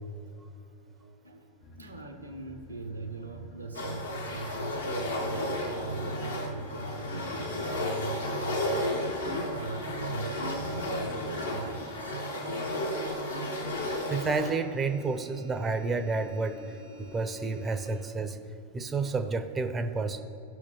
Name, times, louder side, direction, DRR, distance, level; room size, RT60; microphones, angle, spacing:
voice 1, 1.0-8.9 9.5-12.2 12.5-12.9, right 3 dB, 85° right, 4 dB, 0.8 m, -40 dB
sound 1, 1.6-11.9, left 1 dB, 50° left, 0.8 m, -51 dB
sound 2, 3.7-14.5, left 1 dB, 75° left, 1.1 m, -33 dB
sound 3, 5.1-18.0, left 1 dB, 90° left, 2.1 m, -48 dB
voice 2, 14.1-16.6 17.0-18.4 18.7-20.2, right 4 dB, 20° right, 8 dB, 0.5 m, -30 dB
15.5 x 5.8 x 3.1 m, 2.8 s
figure-of-eight pair, 90°, 0 cm